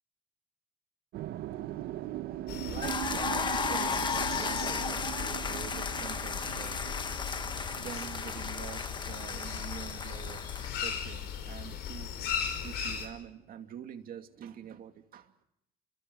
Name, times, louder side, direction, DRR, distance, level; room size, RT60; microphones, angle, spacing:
sound 1, 1.1-11.2 11.5-13.2, right 14 dB, 75° right, 0.9 m, -41 dB
voice 1, 1.5-12.3 12.6-15.3, right 9 dB, 60° right, 2.6 m, -46 dB
sound 2, 2.5-13.1, left 8 dB, 75° left, 5.5 m, -38 dB
sound 3, 2.8-10.9, left 5 dB, 25° left, 1.2 m, -35 dB
29.0 x 26.0 x 6.2 m
cardioid pair, 110°, 17 cm